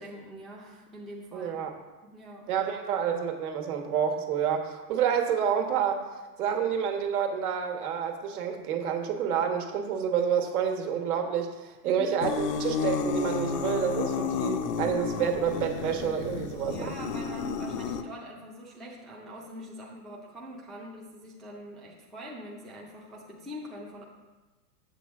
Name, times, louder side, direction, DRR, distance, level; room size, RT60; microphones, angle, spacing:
voice 1, 0.0-1.6 2.0-2.5 11.8-12.1 16.7-24.0, equal, ahead, -5 dB, 0.4 m, -43 dB
voice 2, 1.3-1.7 2.5-6.0 6.4-16.9, right 8 dB, 65° right, 5 dB, 1.4 m, -29 dB
sound 1, 12.2-18.0, left 5 dB, 70° left, 0.8 m, -31 dB
7.7 x 7.6 x 3.5 m, 1.2 s
hypercardioid pair, 140°, 48 cm